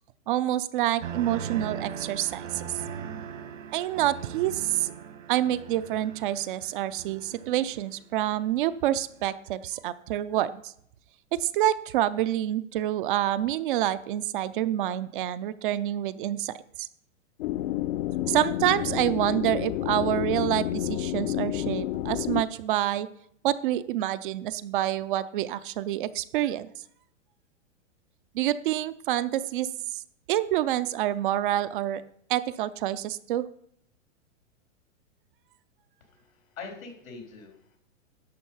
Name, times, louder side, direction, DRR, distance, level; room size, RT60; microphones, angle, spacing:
voice 1, 0.3-2.8 3.7-4.9 5.3-10.7 11.3-16.9 18.3-23.1 23.4-26.7 28.3-30.0 30.3-32.0 32.3-33.5, right 13 dB, 40° right, 14 dB, 0.5 m, -27 dB
sound 1, 1.0-8.1 8.5-9.0, right 7 dB, 70° right, 1.7 m, -39 dB
sound 2, 17.4-22.4, left 14 dB, 40° left, 0.6 m, -30 dB
voice 2, 36.0-37.8, left 4 dB, 90° left, 2 dB, 4.1 m, -44 dB
11.0 x 6.9 x 5.5 m, 0.67 s
hypercardioid pair, 135°, 39 cm